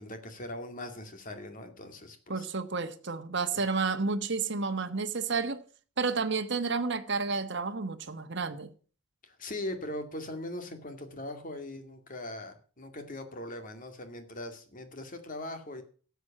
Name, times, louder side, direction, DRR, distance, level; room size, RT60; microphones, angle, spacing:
voice 1, 0.0-2.5 3.5-3.6 9.2-15.8, left 1 dB, 40° left, 2.3 m, -40 dB
voice 2, 2.3-5.6 6.0-8.7, right 4 dB, 55° right, 1.3 m, -31 dB
13.0 x 8.1 x 7.5 m
head